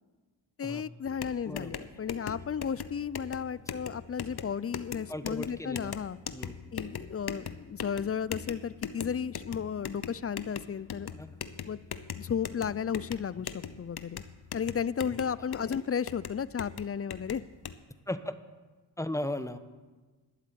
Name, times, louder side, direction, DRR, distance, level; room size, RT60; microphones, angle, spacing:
voice 1, 0.6-6.2 6.7-11.1 11.7-11.8 12.2-14.2 14.5-17.4, left 7 dB, 30° left, 19 dB, 0.4 m, -34 dB
sound 1, 1.1-17.8, left 7 dB, 50° left, 1.0 m, -41 dB
voice 2, 1.5-1.9 5.1-5.9 6.3-6.5 11.1-11.3 18.1-18.4 19.0-19.6, left 1 dB, 5° left, 10 dB, 1.1 m, -36 dB
12.5 x 7.3 x 8.8 m, 1.3 s
cardioid pair, 45°, 48 cm